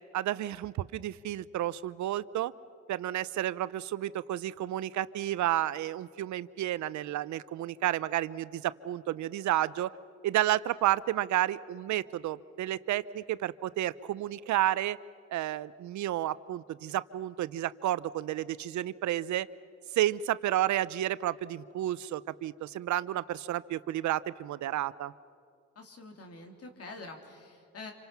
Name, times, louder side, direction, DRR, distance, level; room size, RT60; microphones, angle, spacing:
voice 1, 0.1-2.5 2.9-9.9 10.2-15.0 15.3-19.5 20.0-25.1, right 13 dB, 70° right, 17 dB, 0.6 m, -31 dB
voice 2, 25.8-27.9, left 3 dB, 55° left, 3 dB, 3.4 m, -46 dB
27.5 x 25.5 x 5.9 m, 2.3 s
cardioid pair, 90°, 30 cm